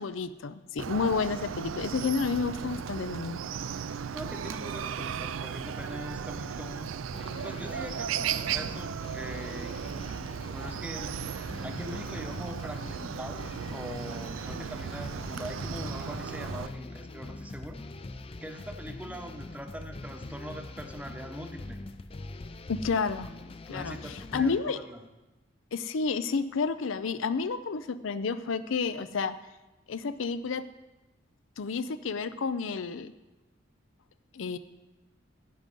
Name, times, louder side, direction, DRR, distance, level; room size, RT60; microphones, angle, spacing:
voice 1, 0.0-3.4 22.7-23.3 23.7-24.8 25.7-29.3 29.9-30.6 31.6-33.1 34.3-34.6, left 5 dB, 80° left, 13 dB, 0.5 m, -30 dB
Chicken rooster, 0.8-16.7, right 7 dB, 90° right, 0.4 m, -36 dB
voice 2, 4.1-6.9 7.4-9.7 10.5-11.2 11.6-17.8 18.4-21.8 23.7-25.0, equal, 5° right, 5 dB, 0.8 m, -42 dB
sound 1, 7.1-24.6, left 2 dB, 30° left, 0.5 m, -43 dB
10.5 x 9.0 x 5.4 m, 1.1 s
head